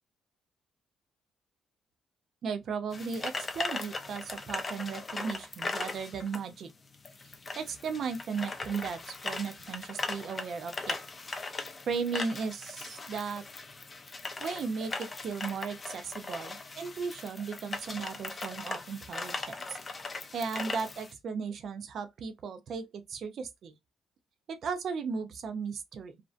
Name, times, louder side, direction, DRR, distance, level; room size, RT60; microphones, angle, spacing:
voice 1, 2.4-6.7 7.6-11.0 11.9-13.4 14.4-19.8 20.3-23.7 24.6-26.2, right 5 dB, 60° right, 0.4 m, -36 dB
sound 1, 2.9-21.1, left 3 dB, 30° left, 0.4 m, -39 dB
2.5 x 2.1 x 2.4 m
cardioid pair, 90°, 0 cm